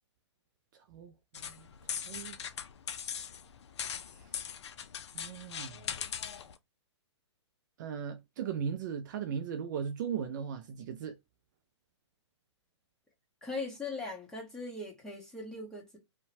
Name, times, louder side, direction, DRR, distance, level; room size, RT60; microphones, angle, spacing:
voice 1, 0.9-1.6 2.1-2.4 4.1-4.3 5.1-5.8 7.8-11.2, right 7 dB, 40° right, 0.4 m, -37 dB
sound 1, 1.3-6.6, left 8 dB, 65° left, 0.4 m, -40 dB
voice 2, 13.4-16.0, left 3 dB, 5° left, 1.0 m, -40 dB
2.7 x 2.2 x 2.6 m
hypercardioid pair, 130°, 15 cm